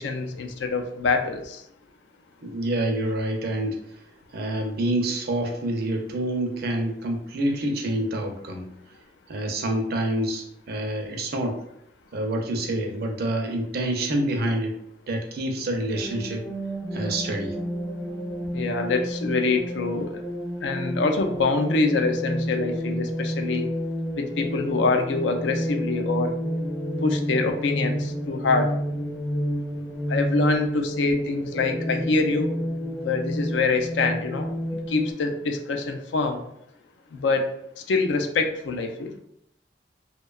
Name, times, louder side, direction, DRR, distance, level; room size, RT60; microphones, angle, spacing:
voice 1, 0.0-1.6 18.5-20.1 20.6-23.6 24.2-26.3 27.0-28.7 30.1-32.5 33.0-34.5 34.9-36.4 37.1-37.5 37.9-39.1, left 3 dB, 90° left, 5 dB, 0.4 m, -25 dB
voice 2, 2.4-3.8 4.3-8.7 9.3-11.6 12.1-14.7 15.1-16.4 16.9-17.6, right 1 dB, 60° right, 3 dB, 0.5 m, -27 dB
sound 1, 15.9-35.1, equal, 10° left, 0.4 m, -30 dB
2.7 x 2.2 x 2.3 m, 0.74 s
head